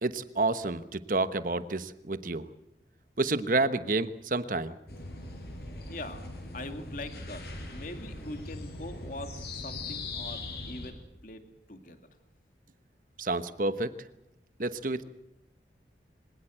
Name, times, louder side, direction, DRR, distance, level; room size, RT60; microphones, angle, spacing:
voice 1, 0.0-2.5 3.2-4.7 13.2-13.9 14.6-15.0, right 2 dB, 50° right, 12 dB, 1.1 m, -29 dB
sound 1, 4.9-10.9, left 2 dB, 65° left, 6.9 m, -40 dB
voice 2, 5.9-6.2 6.5-7.4 7.7-11.4 11.7-12.0, left 1 dB, 50° left, 7 dB, 2.4 m, -42 dB
24.5 x 17.5 x 8.0 m, 0.86 s
head